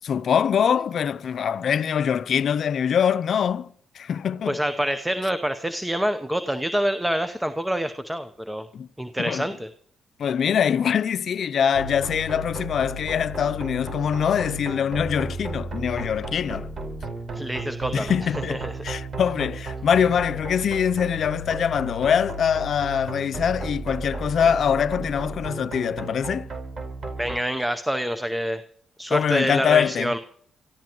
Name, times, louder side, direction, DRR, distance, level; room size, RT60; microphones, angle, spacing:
voice 1, 0.0-4.6 8.7-8.9 9.2-9.5 10.2-16.7 17.9-26.5 29.1-30.1, left 8 dB, 65° left, 0.5 m, -23 dB
voice 2, 4.5-8.7 9.0-9.7 17.3-18.1 18.5-18.7 27.2-28.6 29.0-30.2, equal, 5° right, 0.8 m, -26 dB
sound 1, 11.7-27.4, right 2 dB, 55° right, 4.7 m, -34 dB
25.0 x 14.5 x 3.0 m
supercardioid pair, 65°, 0 cm